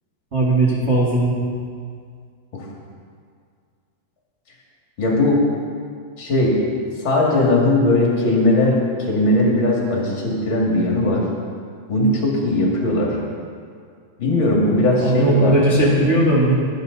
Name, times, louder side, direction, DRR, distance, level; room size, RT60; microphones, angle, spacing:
voice 1, 0.3-1.4 15.0-16.5, right 2 dB, 40° right, -5 dB, 1.0 m, -17 dB
voice 2, 5.0-5.4 6.2-6.5 7.0-8.8 9.1-11.2 11.9-13.1 14.2-15.9, left 1 dB, 35° left, -3 dB, 2.5 m, -18 dB
18.5 x 9.8 x 4.1 m, 2.2 s
omnidirectional pair, 4.7 m